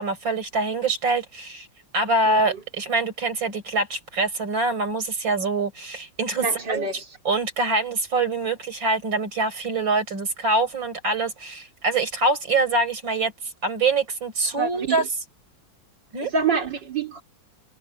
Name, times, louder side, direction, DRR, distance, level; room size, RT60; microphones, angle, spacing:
voice 1, 0.0-1.7 1.9-6.9 7.3-13.3 13.6-15.0 16.1-16.3, right 3 dB, 85° right, 5.7 m, -24 dB
voice 2, 6.4-7.2 14.5-15.1 16.2-17.2, right 5 dB, 65° right, 4.2 m, -27 dB
omnidirectional pair, 2.0 m